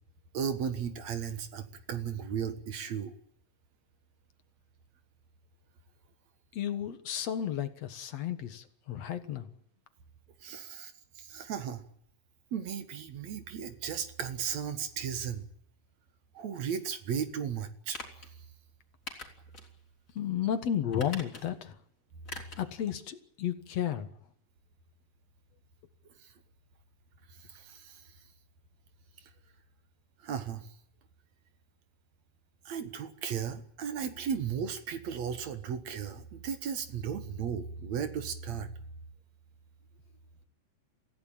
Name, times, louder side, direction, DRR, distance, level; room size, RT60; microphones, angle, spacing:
voice 1, 0.3-3.1 10.4-11.8 12.5-15.5 16.3-18.0 26.2-26.3 27.4-28.1 30.2-30.7 32.7-38.7, right 7 dB, 60° right, 9 dB, 2.6 m, -35 dB
voice 2, 6.5-9.5 20.2-21.8 22.6-24.1, left 9 dB, 60° left, 9 dB, 2.4 m, -33 dB
sound 1, 17.9-18.3 19.1-19.7 20.1-20.2 20.9-21.7 22.3-22.7 23.0-23.1, left 2 dB, 25° left, 3.7 m, -44 dB
25.5 x 16.0 x 8.9 m, 0.70 s
omnidirectional pair, 3.7 m